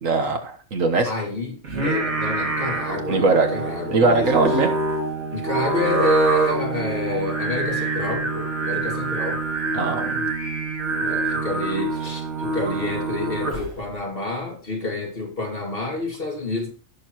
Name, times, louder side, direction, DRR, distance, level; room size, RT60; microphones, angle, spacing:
voice 1, 0.0-1.1 3.1-3.5 3.9-4.7 9.7-10.2, right 3 dB, 70° right, 1.7 m, -20 dB
voice 2, 1.0-4.6 5.3-9.4 11.0-16.7, left 2 dB, 45° left, 2.7 m, -28 dB
Singing, 1.6-13.8, right 2 dB, 55° right, 2.7 m, -26 dB
17.0 x 6.8 x 3.0 m
omnidirectional pair, 1.4 m